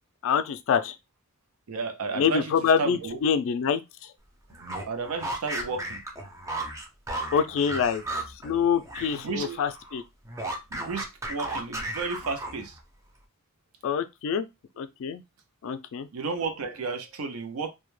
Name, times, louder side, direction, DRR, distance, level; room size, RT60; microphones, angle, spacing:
voice 1, 0.2-0.9 2.1-3.8 7.3-8.0 8.4-10.0 13.8-14.5 14.8-15.2 15.6-16.1, left 7 dB, 65° left, 0.3 m, -25 dB
voice 2, 1.7-2.5 2.8-3.2 4.9-6.0 9.1-9.6 10.7-12.8 16.1-17.7, right 4 dB, 80° right, 0.5 m, -32 dB
sound 1, 4.5-9.2 9.5-12.8, right 1 dB, 15° right, 0.4 m, -35 dB
2.2 x 2.0 x 3.0 m
head